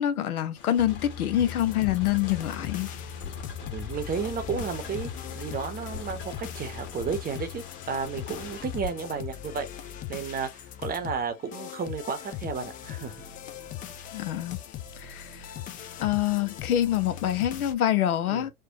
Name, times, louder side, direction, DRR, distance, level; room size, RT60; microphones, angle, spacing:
voice 1, 0.0-2.9 14.1-14.6 15.0-15.5 16.0-18.5, left 11 dB, 80° left, 0.8 m, -26 dB
sound 1, 0.6-8.9, left 6 dB, 45° left, 1.6 m, -40 dB
sound 2, 1.4-17.7, left 11 dB, 20° left, 0.4 m, -40 dB
voice 2, 3.7-9.7 10.1-13.1 18.3-18.5, right 6 dB, 20° right, 0.8 m, -33 dB
4.4 x 2.2 x 2.8 m
hypercardioid pair, 100°, 43 cm